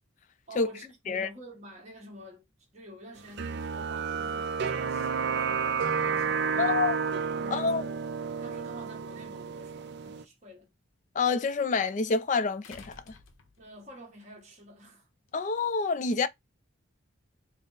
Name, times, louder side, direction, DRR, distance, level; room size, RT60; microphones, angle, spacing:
voice 1, 0.5-2.4 2.7-6.9 7.4-8.0 8.4-10.7 13.6-15.1, equal, 35° right, 1.2 m, -49 dB
sound 1, 3.4-10.2, right 5 dB, 55° right, 0.4 m, -31 dB
voice 2, 6.6-7.0 7.5-7.8 11.2-13.1 15.3-16.3, left 4 dB, 35° left, 0.3 m, -27 dB
sound 2, 12.6-13.9 15.3-15.4, left 4 dB, 75° left, 0.7 m, -52 dB
3.5 x 2.0 x 3.9 m
head